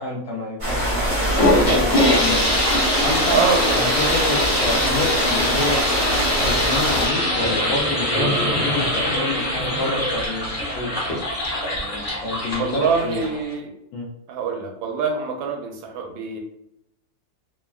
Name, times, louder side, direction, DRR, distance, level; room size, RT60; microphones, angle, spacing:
voice 1, 0.0-2.5 3.0-5.8 6.4-10.9 11.7-13.2 13.9-14.0, left 2 dB, 75° left, -3 dB, 0.9 m, -28 dB
sound 1, 0.6-7.1, equal, 35° right, 0.7 m, -24 dB
sound 2, 1.0-13.5, left 1 dB, 30° left, 0.8 m, -23 dB
voice 2, 3.3-4.0 12.6-13.7 14.3-16.4, right 5 dB, 85° right, 2 dB, 1.3 m, -25 dB
3.2 x 2.1 x 2.3 m, 0.79 s
omnidirectional pair, 2.0 m